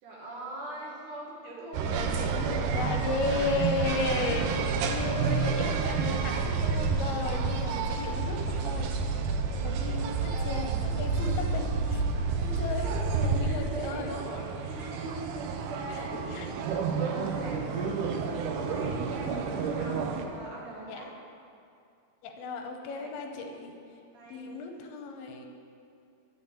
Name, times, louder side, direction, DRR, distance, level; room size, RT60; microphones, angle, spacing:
voice 1, 0.0-3.3 4.5-5.1 9.8-10.8 12.6-15.1 15.4-16.3 16.9-18.1 18.5-21.1 22.9-23.1 24.1-24.6, right 1 dB, 60° right, -3 dB, 2.9 m, -43 dB
sound 1, 1.7-20.3, right 4 dB, 85° right, 1.8 m, -30 dB
voice 2, 1.9-8.9 9.6-10.7 11.0-12.0 12.4-12.9 13.4-14.1 15.9-16.8 17.7-18.1 18.9-19.8 20.9-21.0 22.2-23.7 24.3-25.5, left 3 dB, 80° left, 3 dB, 2.8 m, -35 dB
12.0 x 5.8 x 7.9 m, 2.5 s
omnidirectional pair, 4.5 m